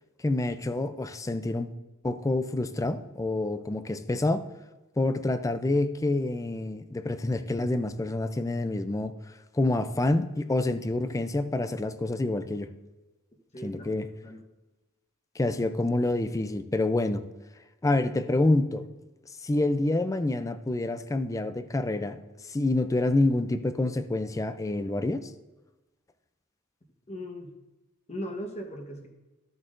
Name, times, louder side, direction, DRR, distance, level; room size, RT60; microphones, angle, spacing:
voice 1, 0.2-1.7 2.0-4.4 5.0-9.1 9.5-12.7 13.6-14.1 15.4-17.2 17.8-18.9 19.4-22.2 22.5-25.3, left 2 dB, 15° left, 10 dB, 0.4 m, -27 dB
voice 2, 13.5-13.9 14.2-14.4 27.1-27.5 28.1-29.1, equal, 30° left, 2 dB, 1.2 m, -38 dB
13.5 x 7.9 x 2.6 m, 1.1 s
head